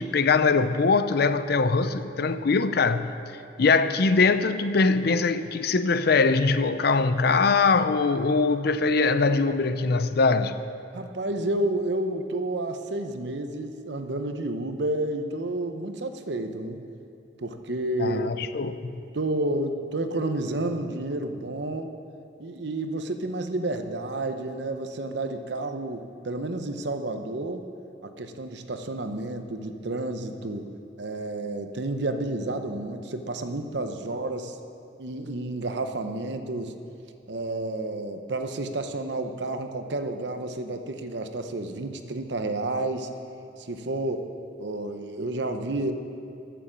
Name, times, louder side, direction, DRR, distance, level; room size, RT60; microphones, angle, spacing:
voice 1, 0.0-3.1 3.6-10.6 18.0-19.0, left 4 dB, 55° left, 12 dB, 0.5 m, -22 dB
voice 2, 10.9-16.8 17.4-18.4 19.1-21.9 22.4-27.6 28.0-30.7 31.0-34.6 35.0-36.7 37.3-43.1 43.6-44.3 44.6-45.9, right 2 dB, 65° right, 7 dB, 0.8 m, -30 dB
14.0 x 7.0 x 7.3 m, 2.8 s
head